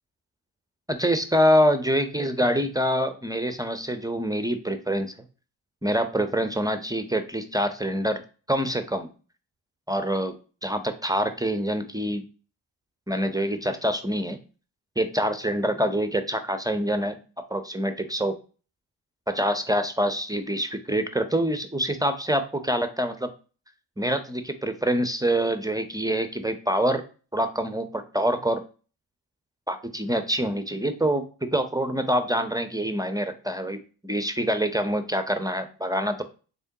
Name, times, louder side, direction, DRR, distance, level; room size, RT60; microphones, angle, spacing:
voice 1, 0.9-5.1 5.8-8.2 8.5-9.1 9.9-10.3 10.6-12.2 13.1-14.4 15.0-17.2 17.5-18.4 19.3-23.3 24.0-27.0 27.3-28.6 29.7-33.8 34.0-36.2, equal, 10° right, 9 dB, 0.5 m, -25 dB
3.7 x 3.5 x 2.7 m, 0.36 s
hypercardioid pair, 50°, 49 cm